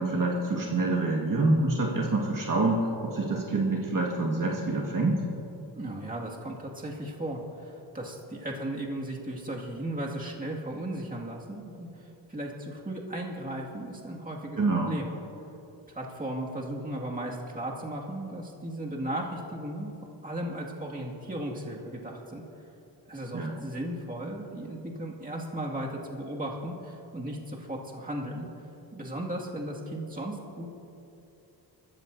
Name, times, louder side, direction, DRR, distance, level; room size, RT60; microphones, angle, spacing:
voice 1, 0.0-5.2 14.6-14.9 23.3-23.6, right 2 dB, 45° right, -2 dB, 1.9 m, -26 dB
voice 2, 5.7-14.6 14.9-15.1 15.9-19.9 20.2-22.4 23.1-28.5 28.9-30.7, right 1 dB, 20° right, -2 dB, 2.1 m, -36 dB
22.5 x 14.0 x 2.7 m, 2.9 s
cardioid pair, 75°, 44 cm